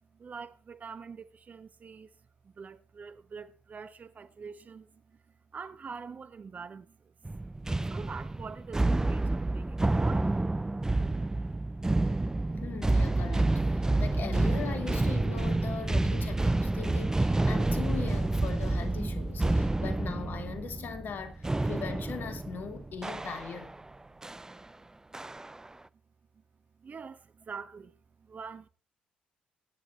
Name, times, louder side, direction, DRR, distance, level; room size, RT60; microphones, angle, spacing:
voice 1, 0.1-2.1 2.4-5.2 5.5-7.1 7.7-10.3 11.1-11.2 13.9-14.0 19.7-19.8 26.8-28.7, right 5 dB, 40° right, 1.3 m, -45 dB
sound 1, 7.3-23.8 24.2-24.5 25.1-25.7, right 2 dB, 15° right, 0.7 m, -29 dB
voice 2, 12.6-23.8, left 6 dB, 55° left, 2.4 m, -40 dB
21.5 x 10.5 x 3.3 m
hypercardioid pair, 50°, 4 cm